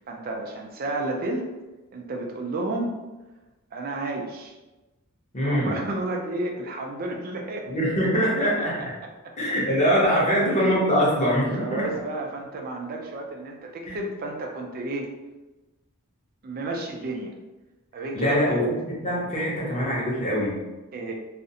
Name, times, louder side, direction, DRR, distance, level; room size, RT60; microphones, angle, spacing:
voice 1, 0.0-1.5 1.9-3.0 3.7-4.5 5.4-7.7 8.3-8.9 10.3-10.7 11.5-15.1 16.4-17.3 17.9-18.7 20.9-21.1, right 2 dB, 40° right, 1 dB, 0.4 m, -31 dB
voice 2, 5.3-5.8 7.7-8.8 9.4-11.9 13.9-14.0 18.1-20.6, equal, 35° left, -6 dB, 0.8 m, -23 dB
2.5 x 2.0 x 2.6 m, 1.1 s
head